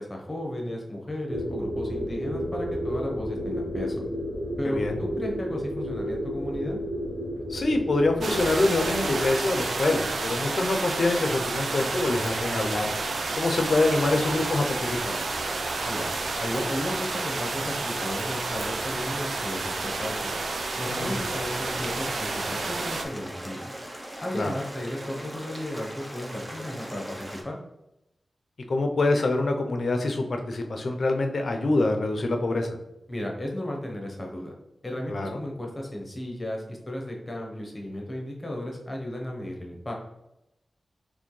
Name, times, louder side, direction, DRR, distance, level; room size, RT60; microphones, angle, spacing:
voice 1, 0.0-4.0 4.6-6.8 15.9-16.1 16.4-20.2 20.8-23.7 24.2-27.6 33.1-34.5 34.8-39.9, left 1 dB, 20° left, 0 dB, 0.9 m, -34 dB
sound 1, 1.3-9.3, equal, 35° right, 1.3 m, -32 dB
voice 2, 4.6-5.0 7.5-12.9 13.4-15.1 20.9-21.2 24.3-24.5 28.7-32.8 35.1-35.3, left 2 dB, 55° left, 4 dB, 0.6 m, -25 dB
sound 2, 8.2-23.0, right 3 dB, 75° right, 0.5 m, -30 dB
sound 3, 20.8-27.4, right 1 dB, 15° right, 0.7 m, -40 dB
4.2 x 3.2 x 3.2 m, 0.88 s
wide cardioid pair, 145°, 0 cm